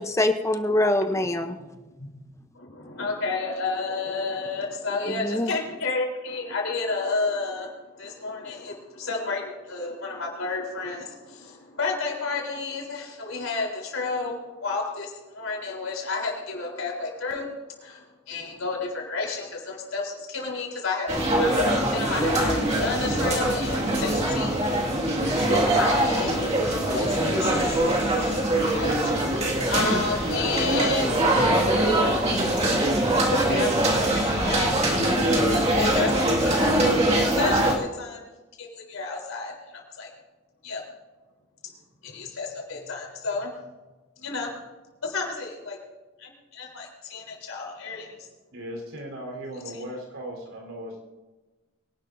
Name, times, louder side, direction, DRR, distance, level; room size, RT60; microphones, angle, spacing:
voice 1, 0.0-1.6 5.1-5.5, left 1 dB, 15° left, 7 dB, 0.8 m, -24 dB
voice 2, 2.5-17.5 17.8-24.6 25.3-28.0 28.7-29.3 29.7-31.1 33.3-34.8 35.7-37.1 37.4-38.2 38.6-40.1 40.6-40.8 42.0-43.5 44.2-44.5 45.0-45.8 46.2-48.2 49.7-49.8, left 3 dB, 80° left, -1 dB, 3.9 m, -31 dB
sound 1, 21.1-37.7, right 1 dB, 30° right, 2.1 m, -23 dB
voice 3, 48.5-51.0, right 1 dB, 85° right, 1 dB, 4.1 m, -37 dB
24.0 x 11.5 x 2.7 m, 1.2 s
head